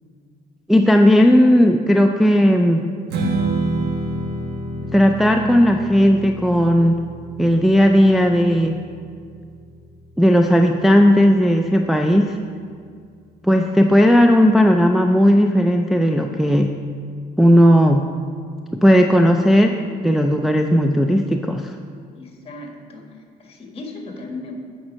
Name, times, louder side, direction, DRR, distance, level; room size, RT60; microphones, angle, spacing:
voice 1, 0.7-2.8 4.9-7.0 7.4-8.8 10.2-12.4 13.4-16.7 17.4-18.0 18.7-19.8 20.0-21.8, equal, ahead, 3 dB, 0.4 m, -15 dB
Strum, 3.1-9.4, right 2 dB, 70° right, 1.3 m, -28 dB
voice 2, 22.1-24.5, left 2 dB, 35° left, 2 dB, 1.7 m, -36 dB
8.9 x 5.3 x 6.2 m, 2.2 s
cardioid pair, 110°, 17 cm